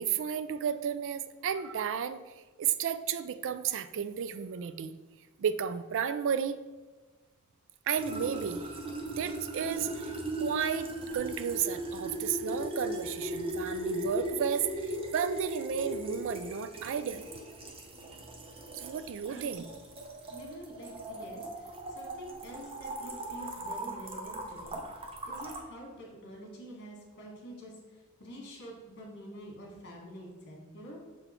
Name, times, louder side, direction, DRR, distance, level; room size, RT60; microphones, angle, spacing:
voice 1, 0.0-4.9 5.4-6.6 7.9-8.7 9.2-17.3 18.7-19.6, right 8 dB, 60° right, 12 dB, 0.3 m, -33 dB
sound 1, 7.9-25.6, right 1 dB, 25° right, 0.7 m, -38 dB
voice 2, 20.3-31.0, equal, 50° left, -1 dB, 1.8 m, -47 dB
6.6 x 4.1 x 4.3 m, 1.3 s
head